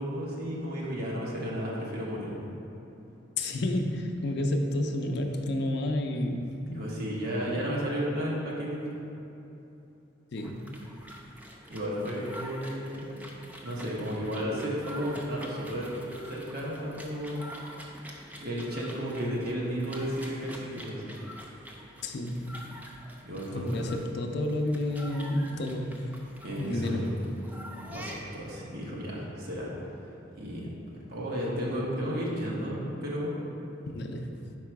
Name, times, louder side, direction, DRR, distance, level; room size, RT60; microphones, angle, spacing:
voice 1, 0.0-2.5 6.7-8.9 11.7-13.2 13.6-15.9 16.3-17.4 18.4-21.1 23.2-23.9 26.4-27.2 27.9-29.7 30.4-30.6 31.1-33.3, equal, 55° right, -5 dB, 1.1 m, -33 dB
voice 2, 3.4-6.9 7.5-7.6 10.3-10.6 22.0-22.5 23.5-26.1 26.6-27.1 33.9-34.5, left 1 dB, 60° left, 4 dB, 0.5 m, -30 dB
sound 1, 10.4-28.5, equal, 10° right, 0.4 m, -46 dB
4.8 x 4.8 x 4.6 m, 3.0 s
head